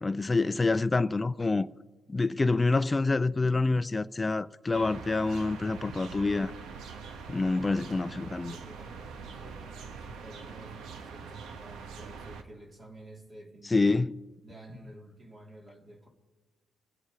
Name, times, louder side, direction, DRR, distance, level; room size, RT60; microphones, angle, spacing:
voice 1, 0.0-1.7 2.1-6.5 7.3-8.6 13.7-14.1, left 3 dB, 20° left, 0.4 m, -27 dB
sound 1, 4.7-12.4, right 5 dB, 80° right, 1.3 m, -43 dB
voice 2, 7.5-13.9 14.4-16.1, right 1 dB, 35° right, 3.0 m, -51 dB
23.5 x 8.0 x 5.0 m
cardioid pair, 90°, 0 cm